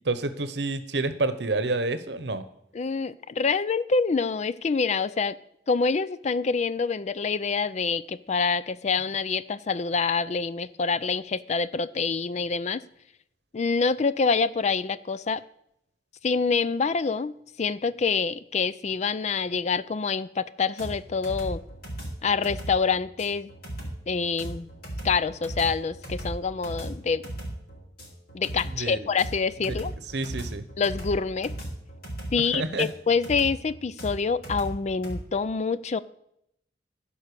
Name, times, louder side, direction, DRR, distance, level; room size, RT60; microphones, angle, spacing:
voice 1, 0.0-2.4 28.7-29.1 30.1-30.6 32.5-32.9, right 2 dB, 65° right, 12 dB, 0.9 m, -28 dB
voice 2, 2.7-5.4 5.7-12.8 13.5-15.4 16.2-21.6 22.2-23.5 24.1-24.7 25.0-27.3 28.3-29.9 30.8-31.5 32.3-36.0, left 5 dB, 40° left, 16 dB, 0.4 m, -26 dB
sound 1, 20.8-35.2, right 1 dB, 55° left, 4.1 m, -37 dB
15.0 x 5.4 x 6.8 m, 0.76 s
head